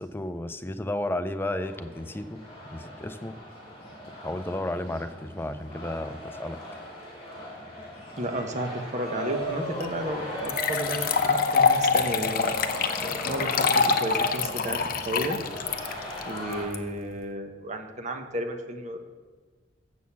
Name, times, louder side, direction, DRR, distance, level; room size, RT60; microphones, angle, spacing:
voice 1, 0.0-2.4 2.7-3.3 4.1-6.6, left 1 dB, 10° left, 11 dB, 0.4 m, -33 dB
sound 1, 1.6-16.7, equal, 30° left, 2.5 m, -38 dB
voice 2, 8.2-12.5 13.0-15.4 16.3-19.0, right 1 dB, 40° right, 5 dB, 0.9 m, -33 dB
sound 2, 9.8-9.9 10.5-16.8, left 5 dB, 50° left, 0.6 m, -25 dB
7.1 x 6.4 x 7.2 m, 1.4 s
head